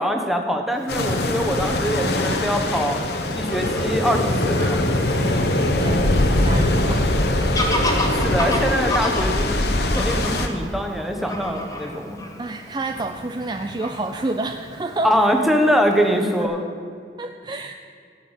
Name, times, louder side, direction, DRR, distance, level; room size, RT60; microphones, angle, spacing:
voice 1, 0.0-3.0 3.3-4.9 8.1-9.6 9.9-12.2 15.0-16.6, equal, ahead, 3 dB, 1.1 m, -23 dB
Fowl / Bird vocalization bird call bird song, 0.7-16.4, left 1 dB, 20° left, 2.0 m, -33 dB
sound 1, 0.9-10.5, left 1 dB, 65° left, 1.2 m, -22 dB
voice 2, 5.8-7.1 7.7-7.9 12.4-15.1 16.4-16.5 17.2-17.7, right 2 dB, 25° right, 6 dB, 0.4 m, -29 dB
15.5 x 6.2 x 9.0 m, 2.2 s
head